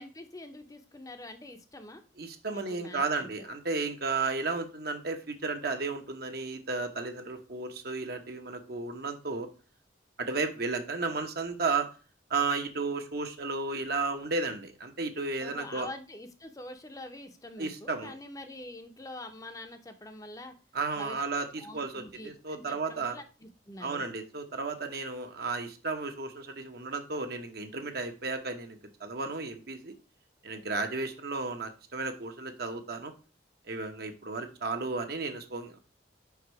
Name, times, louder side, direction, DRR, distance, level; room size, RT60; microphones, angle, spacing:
voice 1, 0.0-2.0 2.5-3.5 15.4-20.5 21.0-21.2 21.6-24.1, left 1 dB, 20° left, 6 dB, 0.7 m, -45 dB
voice 2, 2.2-9.5 10.2-11.9 12.3-15.9 17.6-18.1 20.7-23.2 23.8-29.9 30.4-33.1 33.7-35.8, right 3 dB, 55° right, 5 dB, 1.0 m, -33 dB
5.3 x 4.8 x 4.6 m, 0.33 s
head